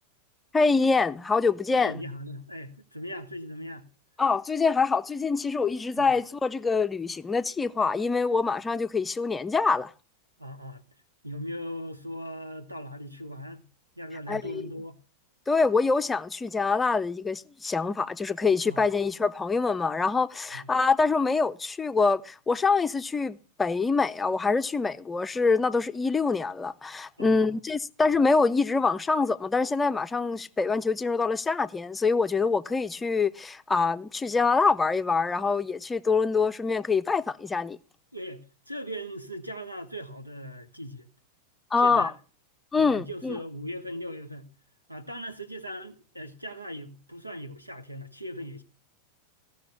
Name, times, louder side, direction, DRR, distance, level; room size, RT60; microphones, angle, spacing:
voice 1, 0.5-2.0 4.2-9.9 14.3-14.6 15.5-37.8 41.7-42.1 42.7-43.4, left 4 dB, 15° left, 0.6 m, -25 dB
voice 2, 1.7-3.9 6.0-6.1 10.4-10.8 11.2-13.6 14.0-15.0 18.6-18.9 20.5-20.7 27.2-27.6 38.1-41.1 41.8-42.1 42.8-44.5 44.9-48.6, equal, 90° right, 1.5 m, -39 dB
16.5 x 6.3 x 7.2 m
figure-of-eight pair, 90°, 0 cm